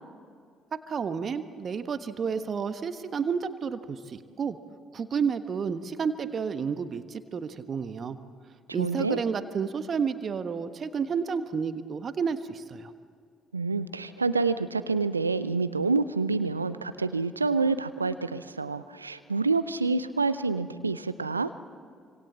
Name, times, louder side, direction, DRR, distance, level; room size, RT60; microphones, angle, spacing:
voice 1, 0.9-4.6 4.9-8.2 8.7-12.9, right 6 dB, 40° right, 10 dB, 1.3 m, -31 dB
voice 2, 8.8-9.2 13.5-21.5, right 4 dB, 85° right, 13 dB, 0.6 m, -27 dB
27.5 x 26.0 x 7.5 m, 2.1 s
figure-of-eight pair, 45°, 0 cm